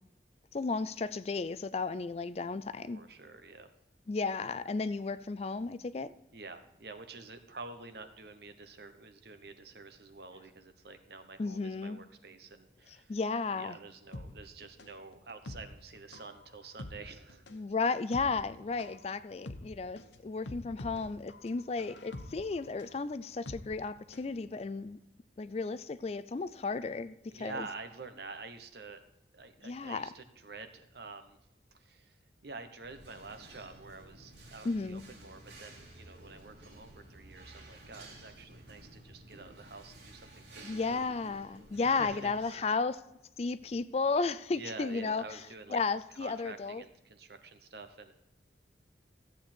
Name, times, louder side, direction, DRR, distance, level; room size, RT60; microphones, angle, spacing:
voice 1, 0.5-3.0 4.1-6.1 11.4-12.0 13.1-13.8 17.5-25.0 25.4-27.7 29.6-30.1 34.6-35.0 40.6-43.0 43.4-45.2 45.7-46.8, left 4 dB, 35° left, 0.3 m, -34 dB
voice 2, 2.9-3.7 6.3-13.2 13.5-17.4 27.3-29.0 29.3-31.4 31.7-32.2 32.4-41.0 41.8-42.6 44.5-45.8 46.1-48.1, right 3 dB, 60° right, 1.0 m, -48 dB
sound 1, 14.1-24.3 24.6-24.7, left 1 dB, 80° left, 1.0 m, -47 dB
sound 2, 32.8-42.4, right 1 dB, 80° right, 2.6 m, -53 dB
14.5 x 8.3 x 4.4 m
head